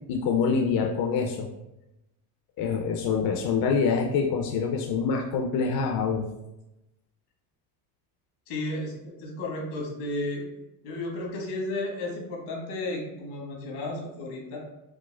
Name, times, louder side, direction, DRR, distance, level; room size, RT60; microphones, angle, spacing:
voice 1, 0.1-1.5 2.6-6.2, left 5 dB, 50° left, 2 dB, 0.5 m, -25 dB
voice 2, 8.5-10.4 10.8-14.6, left 2 dB, 80° left, -1 dB, 1.3 m, -33 dB
4.5 x 2.0 x 2.2 m, 0.92 s
supercardioid pair, 85°, 46 cm